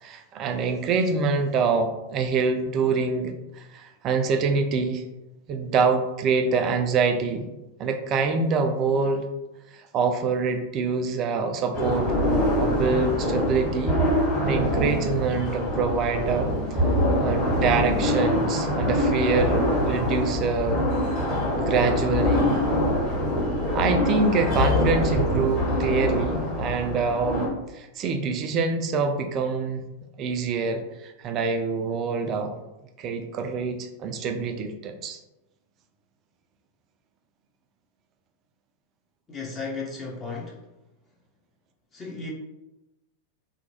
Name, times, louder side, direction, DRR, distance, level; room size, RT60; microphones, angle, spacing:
voice 1, 0.0-5.0 5.5-7.5 7.8-9.3 9.7-12.1 12.6-14.0 14.4-16.5 17.2-20.8 21.6-22.6 23.7-29.8 30.2-32.5 33.0-35.2, right 4 dB, 35° right, 5 dB, 0.3 m, -25 dB
sound 1, 11.7-27.5, left 1 dB, 40° left, 1.2 m, -24 dB
voice 2, 39.3-40.5 41.9-42.3, left 4 dB, 25° left, -3 dB, 0.5 m, -34 dB
2.8 x 2.1 x 2.8 m, 0.98 s
figure-of-eight pair, 90°, 0 cm